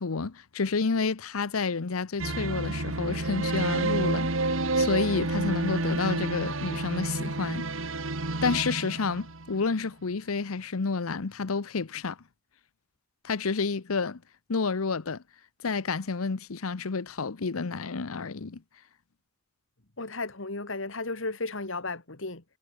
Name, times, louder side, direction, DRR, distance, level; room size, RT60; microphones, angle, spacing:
voice 1, 0.0-4.3 4.8-7.7 8.4-12.2 13.2-14.2 14.5-15.2 15.6-18.6, left 4 dB, 85° left, 0.8 m, -30 dB
sound 1, 2.2-9.7, right 2 dB, 70° right, 2.2 m, -29 dB
voice 2, 20.0-22.4, left 3 dB, 65° left, 2.3 m, -34 dB
head